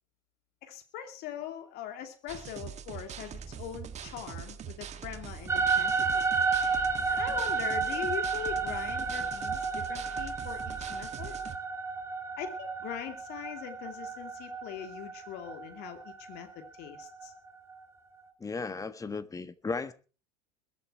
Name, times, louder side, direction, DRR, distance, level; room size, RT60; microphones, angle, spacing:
voice 1, 0.6-6.3 7.1-11.4 12.4-17.3, left 10 dB, 55° left, 6 dB, 2.5 m, -41 dB
sound 1, 2.3-11.6, right 8 dB, 35° right, 1.6 m, -43 dB
sound 2, 5.5-17.8, right 5 dB, 15° right, 2.4 m, -32 dB
voice 2, 18.4-19.9, left 4 dB, 15° left, 13 dB, 1.5 m, -35 dB
21.5 x 8.6 x 4.7 m, 0.36 s
hypercardioid pair, 80°, 20 cm